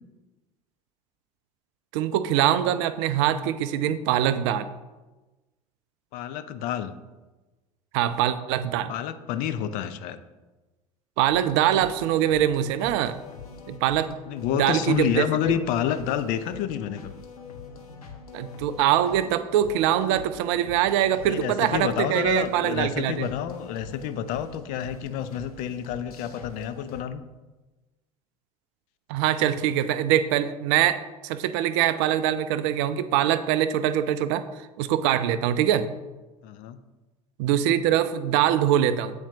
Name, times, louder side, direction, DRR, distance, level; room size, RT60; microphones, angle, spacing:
voice 1, 1.9-4.7 7.9-8.9 11.2-13.2 13.7-14.2 14.5-15.6 18.3-23.3 29.1-34.4 34.8-35.9 37.4-39.1, right 11 dB, 50° right, 13 dB, 0.4 m, -23 dB
voice 2, 6.1-7.0 8.9-10.2 14.3-17.1 21.2-27.2 36.4-36.8, left 10 dB, 45° left, 11 dB, 0.4 m, -29 dB
sound 1, 11.3-27.0, left 5 dB, 75° left, 0.7 m, -44 dB
7.9 x 4.2 x 2.9 m, 1.2 s
figure-of-eight pair, 75°, 19 cm